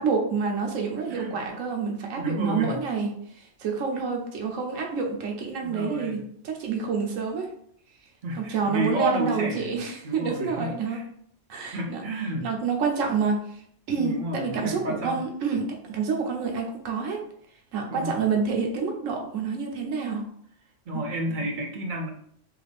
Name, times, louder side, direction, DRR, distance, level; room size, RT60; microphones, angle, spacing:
voice 1, 0.0-3.1 3.4-6.2 6.4-7.5 8.3-11.0 11.5-12.0 12.4-13.4 13.9-17.2 17.7-20.2 20.9-21.0, right 5 dB, 85° right, 1 dB, 1.1 m, -28 dB
voice 2, 1.1-1.4 2.1-2.8 5.6-6.2 8.2-9.7 10.0-11.0 11.7-12.5 14.0-15.2 17.9-18.2 20.9-22.1, right 1 dB, 50° right, 1 dB, 0.7 m, -31 dB
3.4 x 2.4 x 3.3 m, 0.65 s
omnidirectional pair, 1.3 m